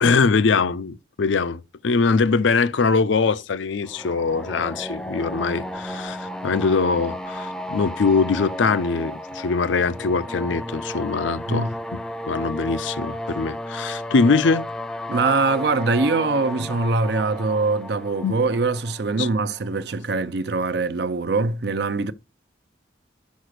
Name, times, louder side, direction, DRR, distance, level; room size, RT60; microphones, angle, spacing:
voice 1, 0.0-11.7 12.3-14.7 18.2-18.3 19.2-19.3, left 4 dB, 80° left, 0.5 m, -22 dB
sound 1, 3.8-19.7, equal, 5° left, 0.4 m, -33 dB
voice 2, 15.1-22.1, right 3 dB, 60° right, 0.5 m, -23 dB
6.2 x 5.0 x 6.4 m
head